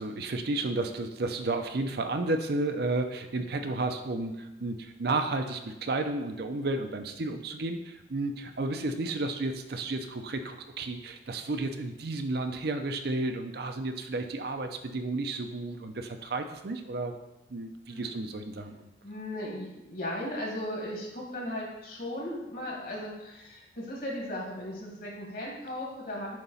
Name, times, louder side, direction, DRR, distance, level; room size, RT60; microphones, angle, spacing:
voice 1, 0.0-17.1 17.5-18.9, right 2 dB, 60° right, 6 dB, 0.6 m, -32 dB
voice 2, 19.0-26.4, left 1 dB, 55° left, -3 dB, 2.0 m, -37 dB
7.7 x 3.0 x 5.6 m, 0.94 s
head